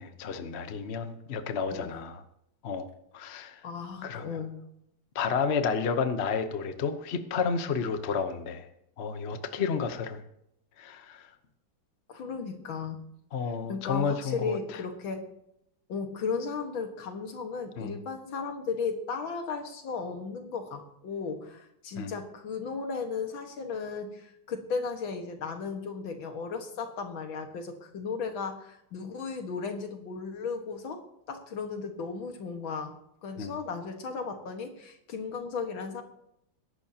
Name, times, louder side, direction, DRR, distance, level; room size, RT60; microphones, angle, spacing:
voice 1, 0.0-2.2 2.6-2.9 3.1-3.6 4.0-4.2 5.1-8.7 9.0-10.2 10.8-11.3 13.3-14.8 17.8-17.9 22.0-22.1 33.4-33.5, left 5 dB, 50° left, 9 dB, 0.8 m, -31 dB
voice 2, 3.6-4.5 12.1-13.0 13.7-15.2 15.9-31.0 31.3-32.9 33.2-36.0, left 5 dB, 80° left, 5 dB, 2.3 m, -35 dB
21.5 x 11.5 x 2.8 m, 0.76 s
omnidirectional pair, 2.1 m